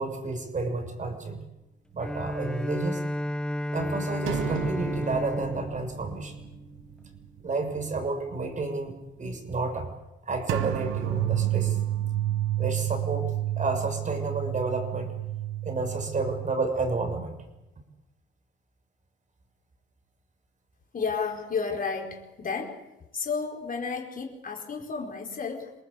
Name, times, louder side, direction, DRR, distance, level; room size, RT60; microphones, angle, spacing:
voice 1, 0.0-1.4 1.9-3.0 3.7-6.4 7.4-9.9 10.2-11.8 12.6-15.1 15.6-17.3, right 3 dB, 40° right, 7 dB, 6.2 m, -31 dB
Bowed string instrument, 2.0-7.1, left 1 dB, 5° left, 0.8 m, -33 dB
sound 1, 4.3-7.4 7.7-7.9 10.5-16.5, right 13 dB, 85° right, 1.3 m, -30 dB
voice 2, 20.9-22.8 23.1-25.7, left 5 dB, 45° left, 1 dB, 4.7 m, -32 dB
28.0 x 19.5 x 8.4 m, 0.98 s
cardioid pair, 90°, 20 cm